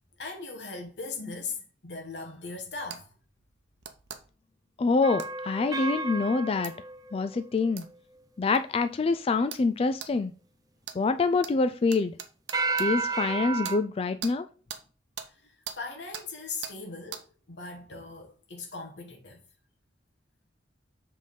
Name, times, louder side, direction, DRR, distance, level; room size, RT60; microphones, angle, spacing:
voice 1, 0.2-3.1 15.4-19.4, left 4 dB, 70° left, 1.2 m, -39 dB
sound 1, 2.9-3.0 3.8-4.2 5.2-5.3 6.6-6.7 7.8-7.9 8.6-8.7 9.5-9.7 10.0-10.1 10.8-11.0 11.4-11.5 11.9-12.9 13.6-13.8 14.2-14.3 14.7-14.8 15.2-15.3 15.7-15.8 16.1-16.3 16.6-16.8 17.1-17.2, right 8 dB, 70° right, 0.8 m, -39 dB
voice 2, 4.8-6.7 7.1-7.8 8.4-10.3 10.9-12.1 12.8-14.5, left 3 dB, 30° left, 0.3 m, -26 dB
sound 2, 5.0-7.9 12.5-13.8, right 3 dB, 20° right, 0.6 m, -32 dB
7.5 x 3.8 x 5.2 m
head